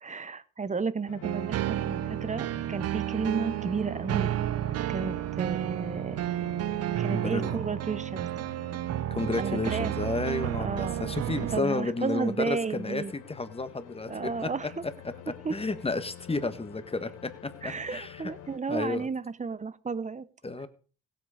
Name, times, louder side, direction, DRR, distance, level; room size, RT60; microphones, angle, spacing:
voice 1, 0.0-4.3 4.9-6.2 7.0-8.3 9.4-10.0 10.6-11.1 11.5-13.1 14.1-14.8 15.4-15.5 17.6-20.2, right 5 dB, 25° right, 16 dB, 0.9 m, -33 dB
sound 1, 1.1-18.6, left 12 dB, 85° left, 1.3 m, -48 dB
sound 2, 1.2-11.6, right 13 dB, 55° right, 0.5 m, -31 dB
voice 2, 7.1-7.6 9.1-14.5 15.5-18.3 18.7-19.1 20.4-20.7, left 3 dB, 20° left, 11 dB, 1.5 m, -32 dB
16.5 x 8.0 x 5.0 m, 0.39 s
cardioid pair, 90°, 30 cm